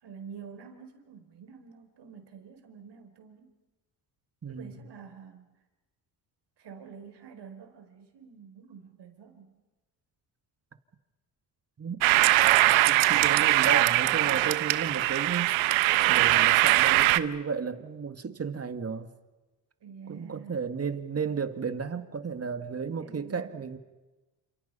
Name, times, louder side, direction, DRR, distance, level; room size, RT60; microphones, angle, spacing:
voice 1, 0.0-3.5 4.5-5.4 6.6-9.6 14.7-15.2 19.8-20.5 22.9-23.6, right 6 dB, 60° right, 4.7 m, -48 dB
voice 2, 4.4-4.8 11.8-12.0 12.9-15.5 16.1-19.1 20.1-23.8, right 5 dB, 30° right, 2.1 m, -33 dB
sound 1, 12.0-17.2, right 17 dB, 90° right, 1.1 m, -22 dB
29.5 x 28.0 x 5.7 m
cardioid pair, 85°, 46 cm